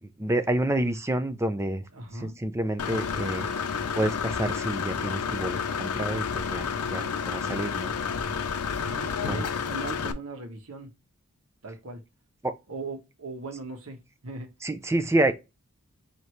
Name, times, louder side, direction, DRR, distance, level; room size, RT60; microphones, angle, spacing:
voice 1, 0.0-1.8 2.1-7.9 9.2-9.4 12.4-12.5 14.6-15.3, right 1 dB, 10° right, 0.5 m, -29 dB
voice 2, 1.9-2.4 8.8-10.9 11.6-12.0 12.7-14.5, right 3 dB, 75° right, 1.2 m, -39 dB
Engine / Mechanisms, 2.8-10.1, left 6 dB, 90° left, 0.6 m, -30 dB
4.6 x 2.8 x 3.2 m
head